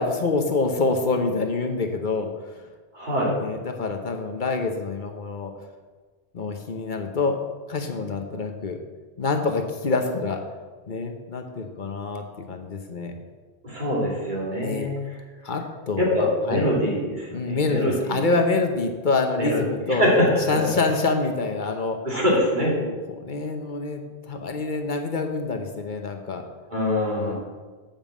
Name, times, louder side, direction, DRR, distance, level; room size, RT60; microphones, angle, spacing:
voice 1, 0.0-2.6 3.4-5.5 6.3-7.4 7.7-8.8 9.2-10.4 10.9-13.1 14.6-14.9 15.4-16.7 17.3-20.0 20.5-22.0 22.7-22.9 23.2-26.4 27.2-27.4, left 3 dB, 50° left, 4 dB, 1.0 m, -26 dB
voice 2, 2.9-3.3 13.6-15.2 16.0-18.2 19.3-19.6 19.9-20.7 22.0-22.7 26.7-27.4, equal, 45° right, -4 dB, 2.7 m, -24 dB
7.2 x 5.3 x 7.3 m, 1.4 s
omnidirectional pair, 1.1 m